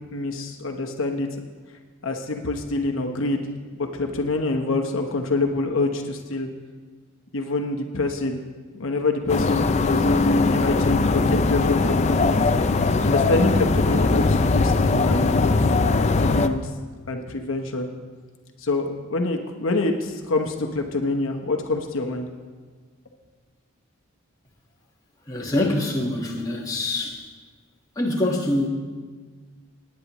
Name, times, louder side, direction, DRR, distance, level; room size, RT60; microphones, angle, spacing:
voice 1, 0.1-1.3 2.0-3.5 3.7-6.5 7.3-8.4 8.7-12.4 12.8-15.6 16.2-16.7 17.1-17.9 18.6-22.3, left 2 dB, 70° left, 3 dB, 1.0 m, -26 dB
sound 1, 9.3-16.5, left 3 dB, 35° left, 0.4 m, -20 dB
voice 2, 25.3-27.2 27.9-28.7, left 1 dB, 15° left, -2 dB, 1.4 m, -24 dB
19.0 x 9.5 x 3.0 m, 1.5 s
head